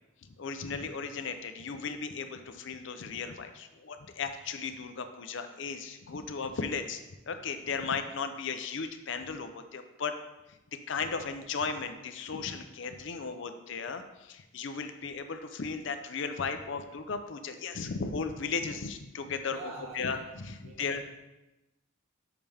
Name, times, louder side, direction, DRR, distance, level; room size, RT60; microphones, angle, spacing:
voice 1, 0.4-7.0 7.3-10.1 10.9-21.0, left 5 dB, 60° left, 8 dB, 0.5 m, -36 dB
voice 2, 19.5-20.2 20.6-21.0, right 3 dB, 80° right, -2 dB, 0.8 m, -45 dB
5.8 x 5.3 x 3.4 m, 0.98 s
head